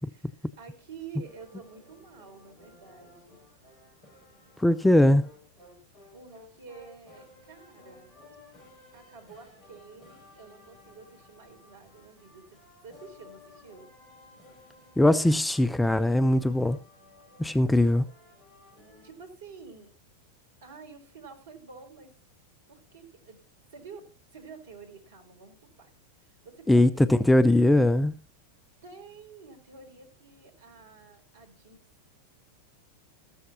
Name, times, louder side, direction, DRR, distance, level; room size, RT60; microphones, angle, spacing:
voice 1, 0.0-3.4 6.1-8.1 8.9-13.9 19.0-19.9 20.6-22.2 22.7-23.4 23.7-27.7 28.8-31.9, right 5 dB, 60° right, 4.2 m, -49 dB
sound 1, 1.2-19.1, left 2 dB, 20° left, 7.3 m, -56 dB
voice 2, 4.6-5.2 15.0-16.8 17.4-18.0 26.7-28.1, left 1 dB, 5° left, 0.5 m, -21 dB
14.0 x 13.5 x 2.9 m
figure-of-eight pair, 90°, 0 cm